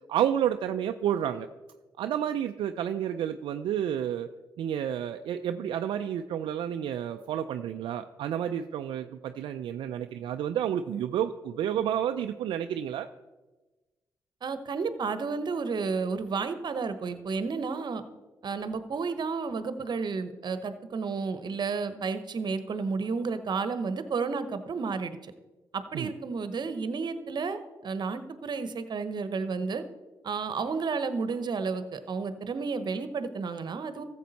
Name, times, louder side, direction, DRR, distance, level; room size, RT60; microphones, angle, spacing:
voice 1, 0.1-1.5 2.0-4.3 4.6-13.1 25.9-26.1, right 10 dB, 75° right, 7 dB, 0.4 m, -30 dB
voice 2, 14.4-18.0 18.4-25.3 25.7-29.8 30.2-34.0, right 4 dB, 55° right, 11 dB, 0.9 m, -32 dB
14.0 x 7.3 x 4.1 m, 1.2 s
supercardioid pair, 50°, 9 cm